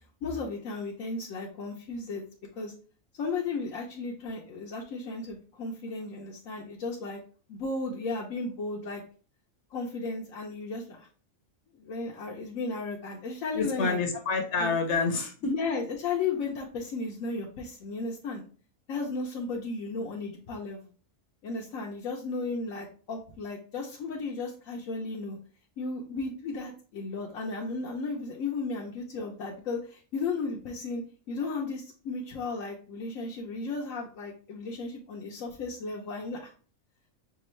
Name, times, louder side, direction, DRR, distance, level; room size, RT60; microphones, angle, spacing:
voice 1, 0.2-2.2 2.6-2.7 3.2-7.2 7.5-9.0 9.7-11.1 11.8-14.0 14.6-14.7 15.5-18.4 18.9-20.8 21.4-25.4 25.8-31.0 31.3-36.5, left 3 dB, 80° left, -2 dB, 1.1 m, -34 dB
voice 2, 13.5-15.5, left 4 dB, 65° left, 5 dB, 1.0 m, -28 dB
6.0 x 2.3 x 3.1 m, 0.39 s
omnidirectional pair, 1.4 m